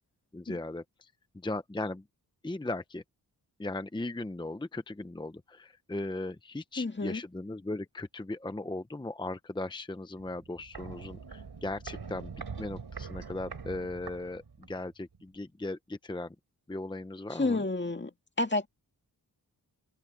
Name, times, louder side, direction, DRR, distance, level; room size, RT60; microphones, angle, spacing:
voice 1, 0.3-1.1 1.3-2.0 2.4-3.0 3.6-16.3 16.7-17.6, left 2 dB, 10° left, 0.8 m, -38 dB
voice 2, 6.8-7.2 17.4-18.1 18.4-18.7, left 2 dB, 30° left, 2.1 m, -29 dB
Walk footsteps, 10.2-14.9 15.1-15.2, right 5 dB, 80° right, 3.4 m, -43 dB
open air
wide cardioid pair, 100°, 39 cm